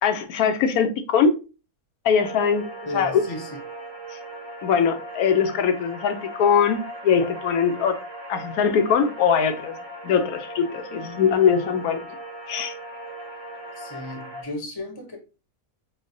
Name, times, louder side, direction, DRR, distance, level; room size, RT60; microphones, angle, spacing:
voice 1, 0.0-1.4 2.0-2.6 2.9-3.2 4.6-8.0 8.3-9.8 10.0-12.1 12.5-12.7, left 6 dB, 85° left, 1.0 m, -21 dB
sound 1, 2.1-14.4, equal, 35° right, 0.4 m, -38 dB
voice 2, 2.8-3.5 13.8-15.2, left 1 dB, 20° left, 0.6 m, -34 dB
5.0 x 2.1 x 2.5 m
omnidirectional pair, 1.5 m